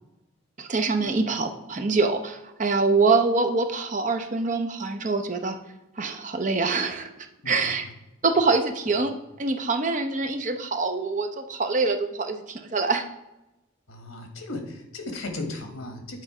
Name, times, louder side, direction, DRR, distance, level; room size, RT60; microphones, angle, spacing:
voice 1, 0.6-5.6 6.0-7.1 7.5-7.8 8.2-13.0, right 3 dB, 35° right, 6 dB, 0.7 m, -25 dB
voice 2, 7.4-7.8 8.9-9.0 10.2-10.3 13.9-16.2, left 2 dB, 85° left, 5 dB, 1.4 m, -36 dB
8.6 x 3.9 x 4.9 m, 0.93 s
head